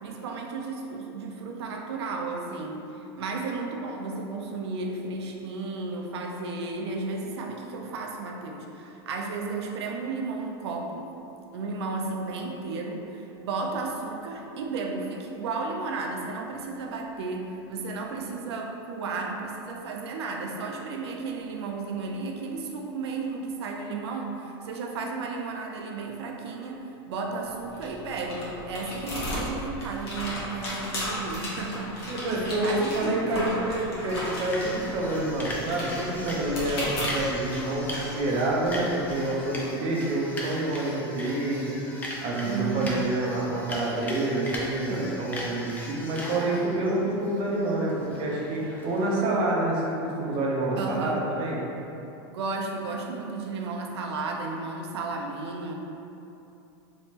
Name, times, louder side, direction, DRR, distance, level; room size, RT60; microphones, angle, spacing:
voice 1, 0.0-11.1 11.5-33.5 42.4-43.0 44.9-45.3 50.8-51.2 52.3-55.7, right 3 dB, 90° right, 1 dB, 0.5 m, -33 dB
sound 1, 27.4-39.1, left 1 dB, 70° left, 1.2 m, -36 dB
voice 2, 32.1-51.6, right 2 dB, 40° right, -3 dB, 0.7 m, -28 dB
sound 2, 34.2-49.1, left 1 dB, 10° left, 0.4 m, -39 dB
3.5 x 3.0 x 2.8 m, 2.9 s
supercardioid pair, 150°, 13 cm